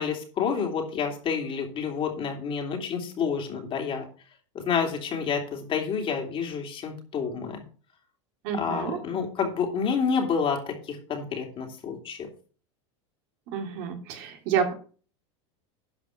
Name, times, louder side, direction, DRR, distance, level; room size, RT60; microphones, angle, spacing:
voice 1, 0.0-4.0 4.5-7.6 8.5-12.3, left 6 dB, 35° left, 2 dB, 3.1 m, -29 dB
voice 2, 8.4-9.0 13.5-14.7, right 7 dB, 60° right, 3 dB, 2.8 m, -29 dB
11.5 x 5.0 x 5.9 m, 0.40 s
supercardioid pair, 130°, 16 cm